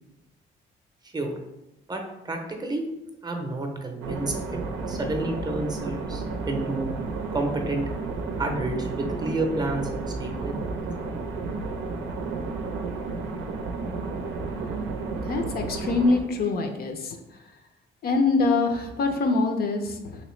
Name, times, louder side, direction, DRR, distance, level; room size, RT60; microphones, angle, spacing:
voice 1, 1.9-2.8 3.2-4.6 4.9-6.9 7.3-7.8 8.4-10.7, right 2 dB, 20° right, 3 dB, 0.6 m, -30 dB
sound 1, 4.0-16.2, right 3 dB, 85° right, 0.5 m, -32 dB
voice 2, 15.3-17.2 18.0-20.2, left 3 dB, 50° left, 4 dB, 0.5 m, -24 dB
3.0 x 2.9 x 3.1 m, 0.93 s
cardioid pair, 90°, 20 cm